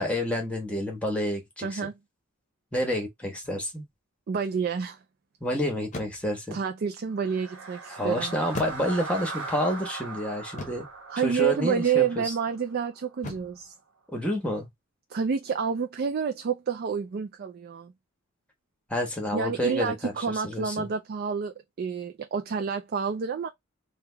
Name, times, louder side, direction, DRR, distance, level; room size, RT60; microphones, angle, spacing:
voice 1, 0.0-1.9 2.7-3.9 5.4-6.6 7.9-10.8 11.2-12.3 14.1-14.7 18.9-20.9, left 1 dB, 5° left, 1.1 m, -29 dB
voice 2, 1.6-2.0 4.3-5.0 6.5-8.3 11.1-13.7 15.1-17.9 19.3-23.5, right 6 dB, 45° right, 0.4 m, -29 dB
sound 1, 3.4-3.8 5.9-6.4 8.5-9.3 10.6-11.0 13.2-13.7, left 2 dB, 35° left, 0.8 m, -38 dB
sound 2, 7.1-13.3, right 3 dB, 70° right, 1.0 m, -40 dB
3.3 x 2.3 x 3.3 m
head